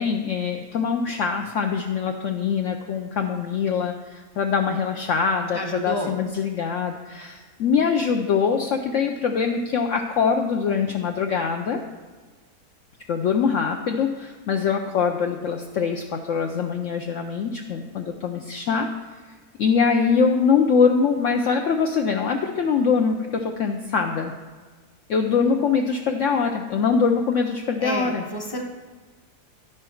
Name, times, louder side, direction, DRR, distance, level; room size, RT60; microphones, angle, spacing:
voice 1, 0.0-11.8 13.1-18.9 19.6-24.3 25.1-28.2, left 6 dB, 70° left, 4 dB, 0.7 m, -23 dB
voice 2, 5.5-6.1 27.8-28.6, equal, 20° left, 1 dB, 0.7 m, -29 dB
10.0 x 6.3 x 4.4 m, 1.4 s
omnidirectional pair, 1.7 m